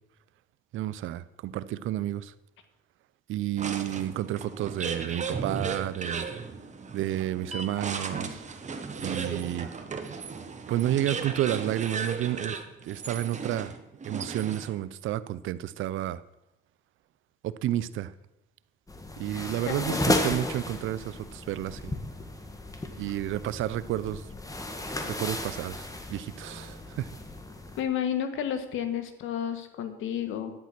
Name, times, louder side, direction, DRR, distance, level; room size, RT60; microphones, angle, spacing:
voice 1, 0.7-2.3 3.3-6.3 6.9-8.4 9.0-9.7 10.7-12.6 12.8-13.7 14.0-16.2 17.4-18.1 19.2-21.9 23.0-24.3 25.1-27.1, right 13 dB, 80° right, 16 dB, 0.6 m, -31 dB
sound 1, 3.6-14.9, right 5 dB, 35° right, 1.4 m, -36 dB
sound 2, 18.9-27.8, left 1 dB, 15° left, 1.6 m, -34 dB
voice 2, 19.7-20.0 27.8-30.5, left 9 dB, 85° left, 8 dB, 1.5 m, -31 dB
11.0 x 9.2 x 6.0 m, 0.96 s
cardioid pair, 90°, 20 cm